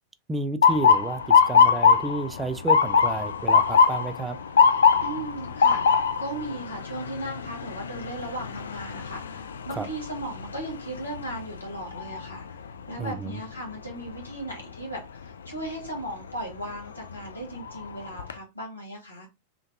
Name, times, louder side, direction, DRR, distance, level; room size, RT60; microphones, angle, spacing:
voice 1, 0.3-4.4 9.7-9.9 13.0-13.4, right 3 dB, 10° right, 0.3 m, -31 dB
Motor vehicle (road) / Siren, 0.6-12.5 13.0-13.4 14.2-14.5 16.4-16.6 17.1-17.2 17.6-18.3, left 6 dB, 65° left, 0.3 m, -22 dB
voice 2, 5.0-12.6 12.9-19.3, right 1 dB, 85° left, 1.6 m, -37 dB
3.8 x 3.3 x 2.5 m
figure-of-eight pair, 90°, 0 cm